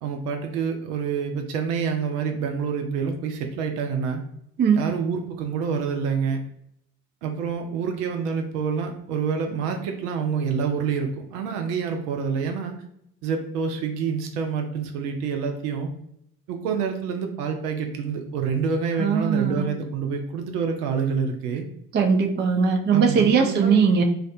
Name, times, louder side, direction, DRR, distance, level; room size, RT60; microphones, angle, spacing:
voice 1, 0.0-4.2 4.8-6.4 7.2-12.7 13.2-15.9 16.5-21.6 22.9-23.9, right 6 dB, 80° right, 4 dB, 0.5 m, -27 dB
voice 2, 4.6-4.9 19.0-19.7 21.9-24.0, right 6 dB, 25° right, 5 dB, 0.4 m, -20 dB
2.5 x 2.1 x 2.6 m, 0.75 s
hypercardioid pair, 45°, 46 cm